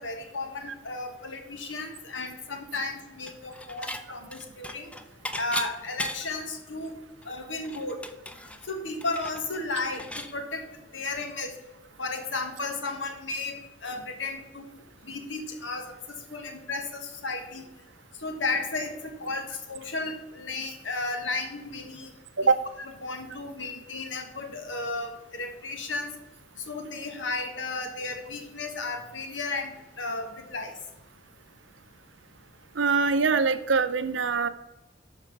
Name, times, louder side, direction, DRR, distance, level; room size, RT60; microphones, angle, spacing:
voice 1, 0.0-4.9 5.3-7.0 7.2-8.1 8.6-11.6 12.0-14.7 15.0-17.7 18.2-22.1 22.8-26.1 26.6-30.7, left 3 dB, 90° left, 6 dB, 1.5 m, -34 dB
Dishes pots and pans / Chink clink, 3.3-4.0 4.3-6.4 6.8-6.9 7.2-10.3, left 1 dB, 5° left, 0.6 m, -37 dB
voice 2, 32.7-34.5, right 4 dB, 85° right, 12 dB, 0.7 m, -23 dB
12.0 x 4.4 x 6.0 m, 1.0 s
head